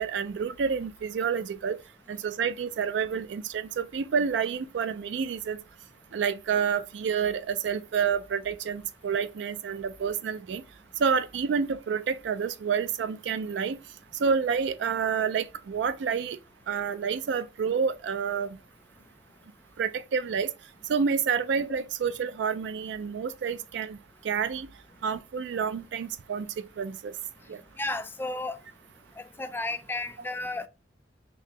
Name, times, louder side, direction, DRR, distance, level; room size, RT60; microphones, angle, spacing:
voice 1, 0.0-1.8 2.1-5.6 6.1-10.6 11.0-13.8 14.2-16.4 16.7-18.6 19.8-20.5 20.9-24.0 24.2-24.7 25.0-26.5 26.8-27.1 27.5-27.6, right 6 dB, 80° right, 0.3 m, -29 dB
voice 2, 27.8-28.6 29.2-30.7, left 2 dB, 10° left, 0.3 m, -33 dB
4.0 x 2.7 x 2.9 m
head